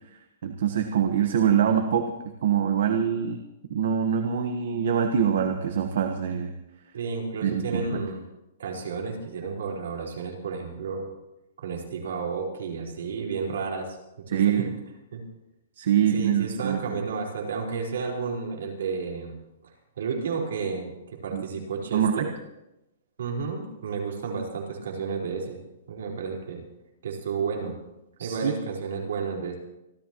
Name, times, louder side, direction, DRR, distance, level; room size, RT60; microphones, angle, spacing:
voice 1, 0.4-2.1 2.4-3.4 3.7-6.5 7.4-8.0 14.3-14.7 15.8-17.0 21.3-21.4 21.9-22.3 28.2-28.5, right 8 dB, 65° right, 5 dB, 1.3 m, -24 dB
voice 2, 6.9-8.2 8.6-11.1 11.6-14.0 14.3-14.7 15.1-15.2 16.1-19.4 20.0-22.3 23.2-25.6 25.9-26.6 27.0-27.7 28.2-29.6, right 5 dB, 80° right, -1 dB, 4.5 m, -32 dB
27.0 x 13.5 x 3.1 m, 0.90 s
hypercardioid pair, 170°, 0 cm